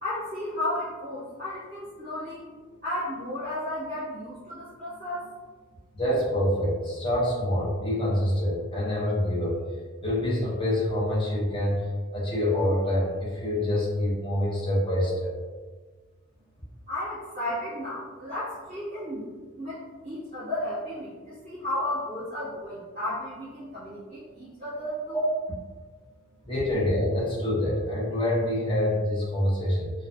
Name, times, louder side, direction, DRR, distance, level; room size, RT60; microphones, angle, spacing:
voice 1, 0.0-2.5 2.8-5.3 16.9-19.3 19.6-25.2, left 1 dB, 35° right, -13 dB, 1.1 m, -33 dB
voice 2, 5.9-9.6 10.0-11.8 12.1-15.3 25.1-25.2 26.5-29.9, left 1 dB, 25° left, -6 dB, 0.6 m, -26 dB
2.5 x 2.3 x 2.3 m, 1.4 s
head